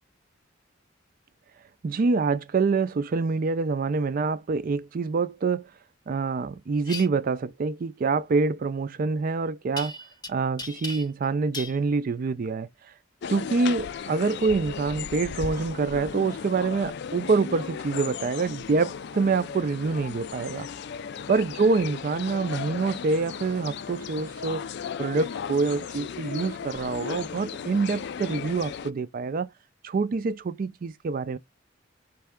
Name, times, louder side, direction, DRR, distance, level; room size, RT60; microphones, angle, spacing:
voice 1, 1.8-5.7 6.1-9.9 10.3-12.7 13.3-20.7 21.3-24.6 25.0-29.5 29.8-31.4, right 4 dB, 45° right, 0.4 m, -26 dB
sound 1, 6.8-7.1 9.8-10.3 10.6-11.3 11.5-11.8, left 2 dB, 20° left, 0.7 m, -36 dB
sound 2, 13.2-28.9, left 7 dB, 60° left, 0.4 m, -36 dB
4.4 x 3.3 x 3.5 m
head